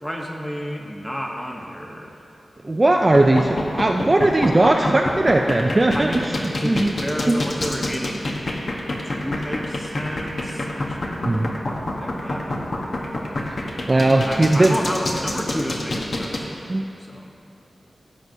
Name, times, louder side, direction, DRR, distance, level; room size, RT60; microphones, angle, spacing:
voice 1, 0.0-2.2 5.9-6.3 6.6-8.3 9.0-13.6 13.9-17.3, equal, 10° left, 0 dB, 1.0 m, -31 dB
voice 2, 2.6-6.3 6.6-6.9 7.3-7.4 11.2-11.5 13.9-14.8 16.7-16.9, right 2 dB, 25° right, 2 dB, 0.4 m, -18 dB
sound 1, 3.0-16.4, left 2 dB, 50° left, 1.0 m, -27 dB
16.0 x 7.7 x 2.7 m, 2.8 s
wide cardioid pair, 110°, 0 cm